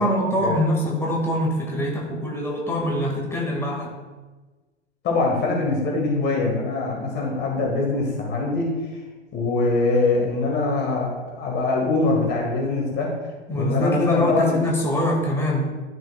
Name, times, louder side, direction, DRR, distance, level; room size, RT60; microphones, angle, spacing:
voice 1, 0.0-3.9 13.5-15.6, left 1 dB, 5° left, -2 dB, 1.7 m, -23 dB
voice 2, 5.0-8.7 9.3-13.1 13.5-14.6, left 3 dB, 30° left, -1 dB, 1.6 m, -23 dB
11.5 x 6.3 x 2.3 m, 1.2 s
hypercardioid pair, 115°, 36 cm